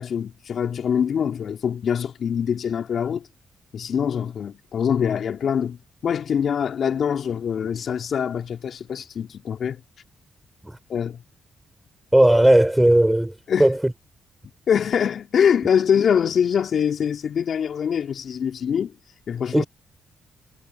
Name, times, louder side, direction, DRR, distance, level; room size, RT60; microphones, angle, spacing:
voice 1, 0.0-3.3 3.7-9.8 10.9-11.2 13.5-13.7 14.7-18.9 19.3-19.6, left 7 dB, 65° left, 3.4 m, -24 dB
voice 2, 12.1-13.3 13.6-13.9 19.5-19.6, right 1 dB, 10° right, 3.5 m, -16 dB
supercardioid pair, 50°, 0 cm